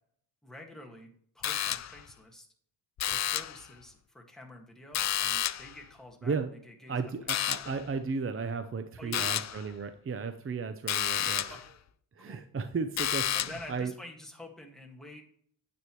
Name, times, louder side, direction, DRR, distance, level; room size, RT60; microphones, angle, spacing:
voice 1, 0.4-1.1 1.3-2.5 3.1-6.3 6.6-7.1 7.6-7.7 9.0-9.6 11.5-11.7 12.2-12.4 13.3-15.2, left 1 dB, ahead, 0 dB, 1.8 m, -48 dB
sound 1, 1.4-2.1 3.0-3.7 4.9-5.8 7.3-7.8 9.1-9.6 10.9-11.7 13.0-13.7, left 10 dB, 40° left, 0.4 m, -31 dB
voice 2, 6.9-11.6 12.2-13.9, right 5 dB, 25° right, 8 dB, 0.7 m, -34 dB
9.6 x 8.2 x 3.1 m, 0.63 s
cardioid pair, 110°, 49 cm